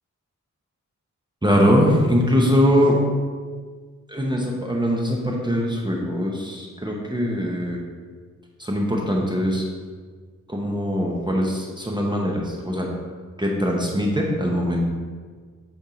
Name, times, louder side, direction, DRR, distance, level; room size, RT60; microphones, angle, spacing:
voice 1, 1.4-3.0 4.1-7.8 8.6-9.6 10.5-12.9 13.4-14.8, equal, 15° right, -2 dB, 0.9 m, -22 dB
8.3 x 3.6 x 5.1 m, 1.6 s
wide cardioid pair, 135°, 31 cm